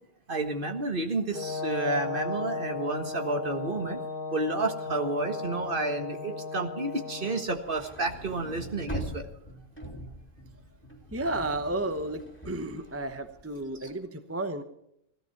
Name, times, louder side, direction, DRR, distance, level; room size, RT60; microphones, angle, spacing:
voice 1, 0.3-4.0 4.3-9.3 13.8-13.9, right 2 dB, 45° right, 5 dB, 1.8 m, -31 dB
Brass instrument, 1.3-7.5, left 4 dB, 45° left, 1.2 m, -35 dB
sound 1, 7.5-13.8, right 1 dB, 10° left, 3.0 m, -42 dB
voice 2, 11.1-14.6, right 2 dB, 15° right, 9 dB, 0.9 m, -32 dB
17.0 x 13.5 x 5.9 m, 0.75 s
omnidirectional pair, 1.3 m